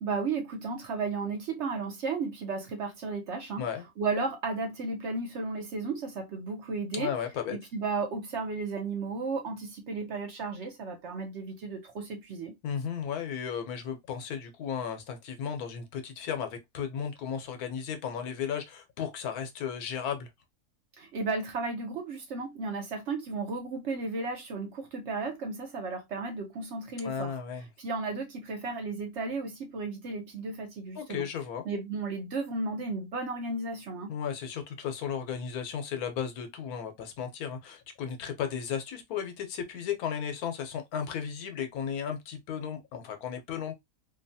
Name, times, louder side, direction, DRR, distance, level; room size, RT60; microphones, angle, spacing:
voice 1, 0.0-3.7 4.0-7.1 7.5-12.6 21.0-27.4 27.8-31.3 31.6-34.1, right 4 dB, 60° right, 0.8 m, -34 dB
voice 2, 6.9-7.6 12.6-20.3 27.0-27.7 31.0-31.7 34.1-43.7, left 7 dB, 80° left, 1.2 m, -35 dB
2.8 x 2.3 x 2.6 m
omnidirectional pair, 1.6 m